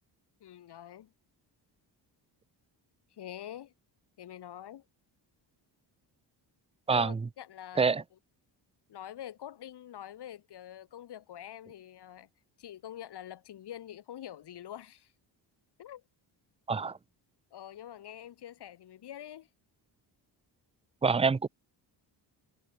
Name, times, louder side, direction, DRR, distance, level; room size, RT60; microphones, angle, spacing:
voice 1, 0.4-1.1 3.1-3.7 4.2-4.8 6.9-8.0 8.9-12.3 12.6-15.1 15.8-16.0 17.5-19.5, left 11 dB, 60° left, 4.1 m, -45 dB
voice 2, 6.9-7.2 7.8-8.0 16.7-17.0 21.0-21.5, right 5 dB, 15° right, 0.6 m, -26 dB
cardioid pair, 165°, 44 cm